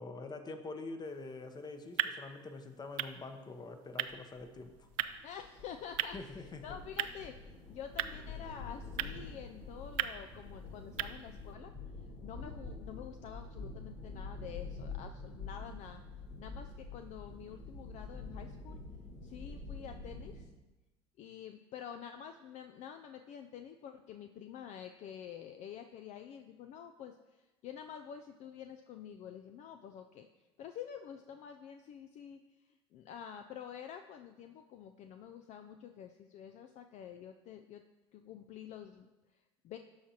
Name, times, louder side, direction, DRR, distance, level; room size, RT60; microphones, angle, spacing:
voice 1, 0.0-4.9 6.1-6.8, left 3 dB, 30° left, 7 dB, 0.9 m, -45 dB
sound 1, 1.0-11.6, right 13 dB, 65° right, 0.4 m, -41 dB
sound 2, 4.1-20.4, left 3 dB, 70° left, 2.3 m, -47 dB
voice 2, 5.2-11.7 12.2-16.0 16.4-18.8 19.2-20.5 21.2-30.3 30.6-32.4 32.7-37.8 38.1-39.8, left 8 dB, 50° left, 7 dB, 0.4 m, -48 dB
12.5 x 4.9 x 2.9 m, 1.1 s
hypercardioid pair, 75°, 15 cm